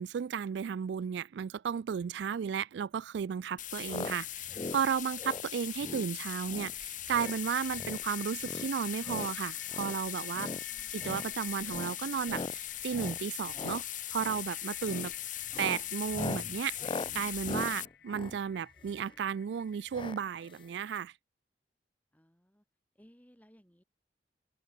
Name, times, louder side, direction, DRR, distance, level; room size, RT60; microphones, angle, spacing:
voice 1, 0.0-10.5 10.9-13.8 14.1-15.1 15.6-21.1, right 7 dB, 65° right, 0.3 m, -34 dB
sound 1, 3.6-17.8, left 13 dB, 45° left, 1.2 m, -40 dB
sound 2, 3.9-4.2 4.4-4.8 5.2-5.5 5.8-6.1 6.5-6.7 7.1-7.4 7.7-8.0 8.4-9.3 9.7-10.0 10.3-10.6 11.0-11.3 11.7-12.0 12.3-12.6 12.9-13.2 13.5-13.8 14.2-14.4 14.8-15.1 15.5-19.1 19.9-20.2 20.5-20.6 20.7-20.8, left 2 dB, 30° left, 0.7 m, -40 dB
sound 3, 6.8-21.0, left 8 dB, 65° left, 1.0 m, -54 dB
voice 2, 22.1-22.6 22.9-23.8, equal, 10° left, 5.6 m, -62 dB
open air
head